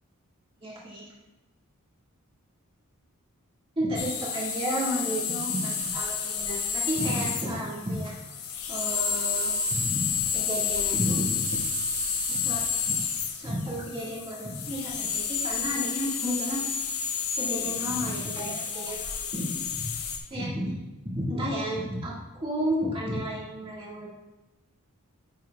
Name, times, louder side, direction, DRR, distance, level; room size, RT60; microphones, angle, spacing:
voice 1, 0.6-1.1 3.8-8.2 8.7-11.6 12.3-13.0 13.3-16.6 17.4-19.5 19.8-19.9 20.3-20.8 21.0-24.1, equal, 25° right, -7 dB, 1.8 m, -32 dB
sound 1, 3.9-20.2, left 6 dB, 70° left, 1.0 m, -30 dB
10.5 x 6.1 x 2.3 m, 1.0 s
head